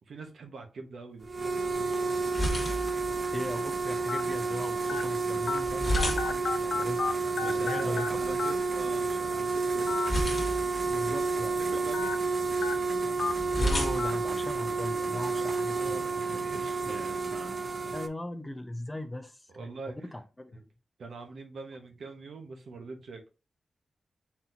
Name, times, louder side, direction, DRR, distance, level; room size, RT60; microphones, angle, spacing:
voice 1, 0.1-2.1 7.4-10.0 11.6-12.2 15.2-17.3 19.5-20.1 20.5-20.6 21.0-23.2, right 3 dB, 80° right, 0.9 m, -44 dB
sound 1, 1.2-15.2, equal, 35° left, 1.3 m, -36 dB
sound 2, 1.2-18.1, right 4 dB, 45° right, 0.5 m, -30 dB
sound 3, 1.9-2.2 2.9-3.0 4.1-4.2 4.9-5.0 5.5-5.6 6.0-7.1 7.4-8.1 8.4-8.5 9.8-10.1 10.5-10.6 11.9-12.1 12.6-12.7 13.2-13.3 14.0-14.1, left 5 dB, 70° left, 0.5 m, -32 dB
voice 2, 3.3-8.2 10.9-11.8 13.6-16.0 16.4-16.5 17.9-19.7 20.0-20.6, left 1 dB, 15° left, 0.6 m, -39 dB
4.1 x 4.1 x 2.5 m
wide cardioid pair, 125°, 0 cm